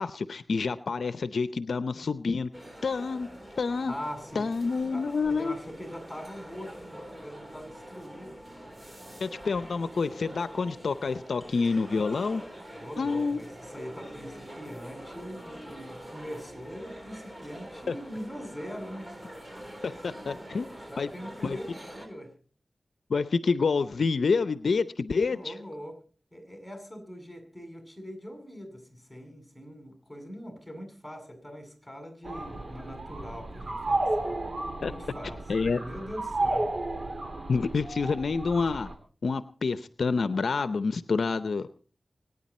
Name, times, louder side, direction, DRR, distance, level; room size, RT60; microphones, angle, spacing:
voice 1, 0.0-2.5 2.8-3.3 3.6-3.9 4.4-5.5 9.2-12.4 13.0-13.4 17.9-18.0 19.8-20.7 21.0-21.1 21.4-21.6 23.1-25.5 34.8-34.9 35.5-35.8 37.5-38.9 39.2-41.7, left 4 dB, 80° left, 13 dB, 0.6 m, -28 dB
sound 1, 2.5-22.1, equal, 25° right, 3.7 m, -45 dB
voice 2, 3.9-4.4 4.9-8.4 12.7-19.1 20.1-20.5 20.9-22.3 25.3-26.0 26.3-34.3 34.8-36.7, equal, 5° left, 4 dB, 7.6 m, -42 dB
sound 2, 32.2-38.9, right 2 dB, 55° right, 2.9 m, -33 dB
25.0 x 9.8 x 4.3 m, 0.41 s
cardioid pair, 40°, 0 cm